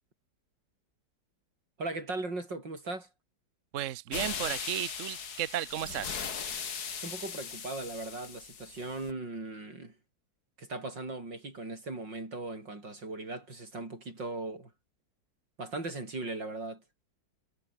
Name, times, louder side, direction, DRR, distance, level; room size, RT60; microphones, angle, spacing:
voice 1, 1.8-3.1 7.0-9.9 10.6-14.7 15.6-16.8, right 2 dB, 70° right, 7.2 m, -38 dB
voice 2, 3.7-6.2, right 12 dB, 55° right, 0.9 m, -34 dB
sound 1, 4.1-9.1, left 7 dB, 55° left, 2.2 m, -39 dB
omnidirectional pair, 2.0 m